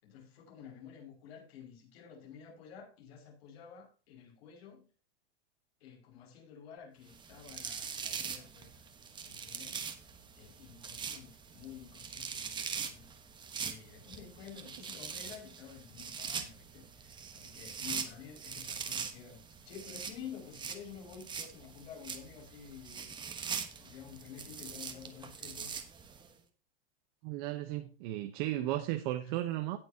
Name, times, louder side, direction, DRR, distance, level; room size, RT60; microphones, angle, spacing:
voice 1, 0.0-4.9 5.8-8.8 9.2-9.9 10.3-13.1 13.6-23.1 23.8-25.7 28.6-28.8, left 8 dB, 75° left, 5.9 m, -51 dB
sound 1, 7.1-26.3, right 6 dB, 15° right, 1.2 m, -42 dB
voice 2, 27.2-29.8, right 14 dB, 50° right, 1.0 m, -35 dB
18.0 x 7.0 x 2.8 m
supercardioid pair, 155°, 31 cm